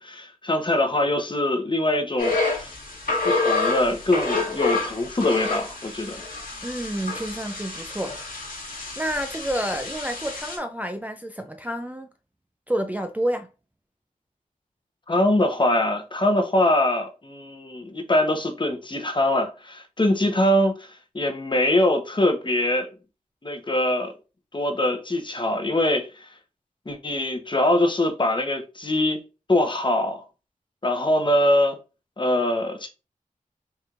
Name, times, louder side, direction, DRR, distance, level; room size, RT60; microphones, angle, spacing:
voice 1, 0.0-2.8 3.2-6.2 15.1-20.9 21.1-22.9 23.4-24.1 24.5-26.3 26.9-29.2 29.5-30.2 30.8-31.8 32.2-32.9, left 1 dB, 35° left, 0.8 m, -23 dB
sound 1, 2.2-10.6, left 3 dB, 75° left, 1.5 m, -28 dB
voice 2, 6.6-8.2 9.0-12.1 12.7-13.5, right 1 dB, 10° right, 0.4 m, -29 dB
4.4 x 3.3 x 2.4 m
wide cardioid pair, 65°, 15 cm